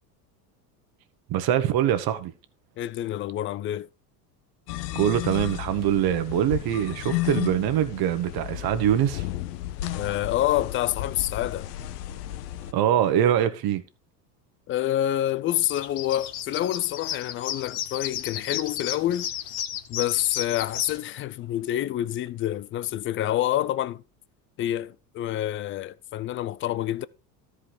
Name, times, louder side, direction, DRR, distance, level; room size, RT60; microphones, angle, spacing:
voice 1, 1.3-2.3 4.9-9.3 12.7-13.8, right 10 dB, 45° right, 1.5 m, -23 dB
voice 2, 2.8-3.9 9.9-11.7 14.7-19.3 19.9-24.0 24.6-27.1, left 13 dB, 25° left, 0.4 m, -27 dB
sound 1, 4.7-12.7, left 14 dB, 70° left, 0.9 m, -33 dB
sound 2, 15.5-21.0, left 11 dB, 50° left, 1.3 m, -33 dB
13.0 x 5.0 x 4.6 m
hypercardioid pair, 80°, 50 cm